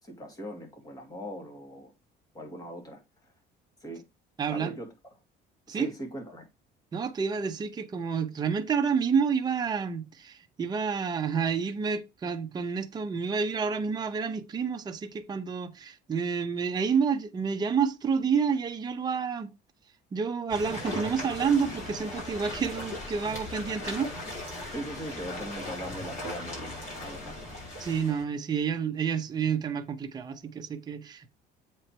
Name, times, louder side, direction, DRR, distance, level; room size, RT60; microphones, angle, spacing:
voice 1, 0.0-1.9 2.3-3.3 3.8-4.0 4.5-4.9 5.7-6.5 24.7-26.7 27.0-27.4, equal, 20° left, 2.2 m, -40 dB
voice 2, 4.4-4.7 5.7-5.9 6.9-19.5 20.1-24.1 27.8-31.3, right 6 dB, 20° right, 0.8 m, -29 dB
sound 1, 20.5-28.2, left 2 dB, 45° left, 4.8 m, -38 dB
7.8 x 4.5 x 4.5 m
cardioid pair, 165°, 19 cm